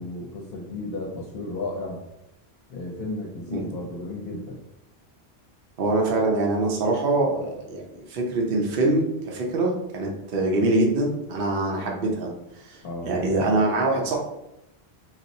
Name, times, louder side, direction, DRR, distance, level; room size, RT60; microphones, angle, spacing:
voice 1, 0.0-2.0 2.7-4.6 12.8-13.2, left 2 dB, 65° left, -3 dB, 0.8 m, -33 dB
voice 2, 5.8-7.8 8.1-12.3 12.7-12.8 13.1-14.2, right 2 dB, 65° right, -1 dB, 0.8 m, -24 dB
4.1 x 2.0 x 2.6 m, 0.87 s
omnidirectional pair, 1.1 m